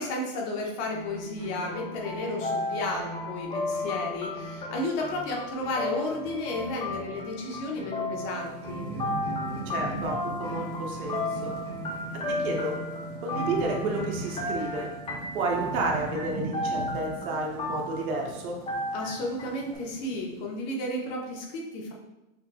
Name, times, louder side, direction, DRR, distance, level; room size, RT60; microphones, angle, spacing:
voice 1, 0.0-8.9 18.9-21.9, left 2 dB, 50° left, 0 dB, 1.1 m, -33 dB
sound 1, 0.9-15.0, right 1 dB, 15° right, 0.9 m, -43 dB
sound 2, 1.7-18.3 18.7-19.7, left 2 dB, 15° left, 0.5 m, -34 dB
Thunderstorm / Rain, 8.2-20.5, right 3 dB, 55° right, 0.8 m, -39 dB
voice 2, 9.7-11.5 12.4-12.7 13.2-14.9 15.3-18.6, right 2 dB, 75° right, 0 dB, 1.1 m, -31 dB
6.2 x 2.8 x 2.3 m, 0.99 s
supercardioid pair, 130°, 43 cm